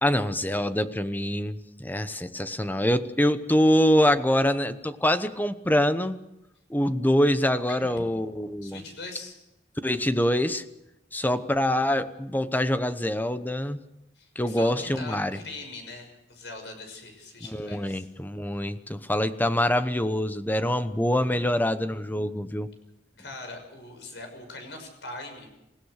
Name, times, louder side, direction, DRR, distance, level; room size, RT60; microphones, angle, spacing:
voice 1, 0.0-6.2 6.7-8.8 9.8-10.6 11.1-13.8 14.4-15.4 17.5-22.7, left 1 dB, 10° left, 12 dB, 0.9 m, -25 dB
voice 2, 8.6-9.3 14.2-18.1 18.5-18.6 23.2-25.5, left 2 dB, 80° left, 5 dB, 6.2 m, -41 dB
27.5 x 16.5 x 6.5 m, 0.88 s
head